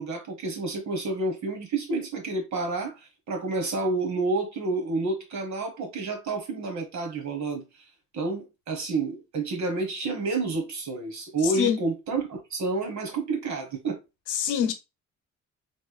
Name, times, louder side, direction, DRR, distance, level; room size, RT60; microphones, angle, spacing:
voice 1, 0.0-7.8 8.1-14.0, right 3 dB, 65° right, 1.5 m, -29 dB
voice 2, 11.4-11.8 14.3-14.7, left 9 dB, 85° left, 0.8 m, -25 dB
3.6 x 3.1 x 2.3 m
cardioid pair, 90°, 30 cm